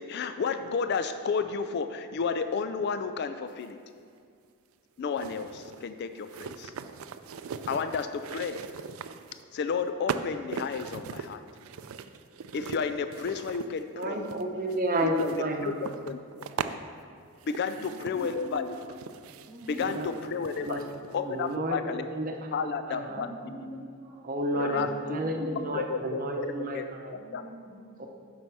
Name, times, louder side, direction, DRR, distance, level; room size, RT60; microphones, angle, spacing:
voice 1, 0.0-3.8 5.0-6.7 7.7-8.6 9.5-11.4 12.5-14.3 15.2-16.2 17.5-18.9 19.7-20.7 21.1-22.1 22.5-23.5 24.6-25.2 25.7-26.5 26.7-26.9 27.3-27.4, left 5 dB, 50° left, 10 dB, 0.3 m, -32 dB
sound 1, 3.7-3.8 5.2-9.4 10.1-16.8 17.4-21.2 21.5-21.6, right 6 dB, 80° right, 0.4 m, -40 dB
voice 2, 13.9-15.8 19.8-20.1 20.4-20.8 21.1-22.6 22.9-23.3 24.2-27.1 28.0-28.1, right 1 dB, 40° right, 3 dB, 0.8 m, -31 dB
voice 3, 17.7-18.6 19.5-20.3 23.1-24.3 24.5-25.6 27.1-28.1, equal, 20° right, -4 dB, 1.5 m, -44 dB
7.9 x 5.5 x 6.1 m, 2.3 s
head